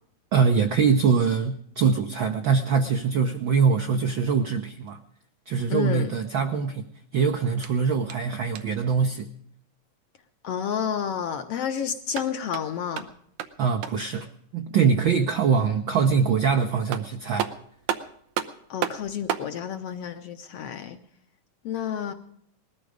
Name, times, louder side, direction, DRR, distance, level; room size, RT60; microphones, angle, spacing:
voice 1, 0.3-5.0 5.5-6.8 7.1-9.3 13.6-14.3 14.5-17.5, right 6 dB, 70° right, 6 dB, 1.1 m, -23 dB
voice 2, 5.7-6.1 10.4-13.1 18.7-21.0 21.7-22.1, left 8 dB, 65° left, 7 dB, 1.6 m, -30 dB
sound 1, 7.6-8.9 11.9-14.2 16.4-16.5 16.9-19.5, right 9 dB, 90° right, 2.4 m, -33 dB
20.0 x 13.5 x 5.0 m, 0.67 s
omnidirectional pair, 3.5 m